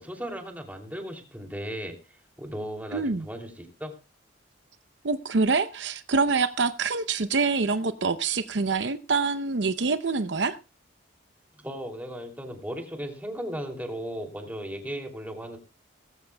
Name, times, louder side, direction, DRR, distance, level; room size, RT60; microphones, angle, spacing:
voice 1, 0.0-3.9 11.6-15.6, equal, 10° right, 3 dB, 2.8 m, -36 dB
voice 2, 2.9-3.3 5.0-10.6, right 4 dB, 65° right, 10 dB, 0.7 m, -25 dB
20.0 x 15.0 x 2.3 m, 0.28 s
head